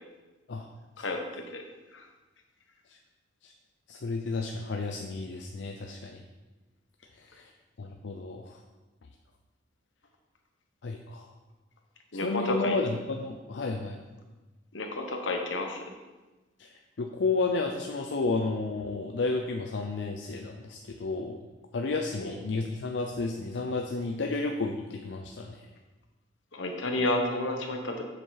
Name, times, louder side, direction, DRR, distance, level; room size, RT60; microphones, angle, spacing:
voice 1, 3.9-6.2 7.2-7.5 7.8-8.6 10.8-11.3 12.2-14.0 16.6-16.7 17.0-21.4 21.7-25.7, left 3 dB, 65° left, 3 dB, 0.5 m, -32 dB
voice 2, 12.1-12.8 14.7-15.8 22.2-22.3 26.5-27.9, left 2 dB, 80° left, 3 dB, 1.1 m, -30 dB
7.3 x 6.5 x 4.0 m, 1.2 s
head